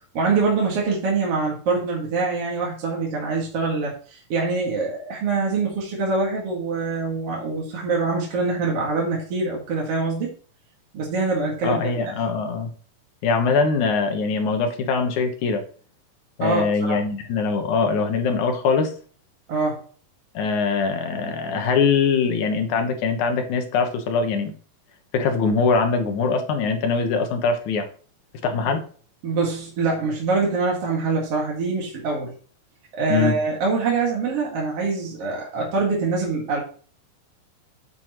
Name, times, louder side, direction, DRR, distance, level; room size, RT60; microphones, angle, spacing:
voice 1, 0.1-10.3 10.9-11.9 16.4-17.0 19.5-19.8 29.2-32.3 32.9-36.6, right 4 dB, 45° right, -3 dB, 2.6 m, -24 dB
voice 2, 11.6-12.7 13.2-15.6 16.4-18.9 20.3-24.5 25.1-27.9 28.4-28.8 33.1-33.3, left 5 dB, 65° left, 5 dB, 2.3 m, -22 dB
8.6 x 7.5 x 3.1 m, 0.40 s
omnidirectional pair, 4.3 m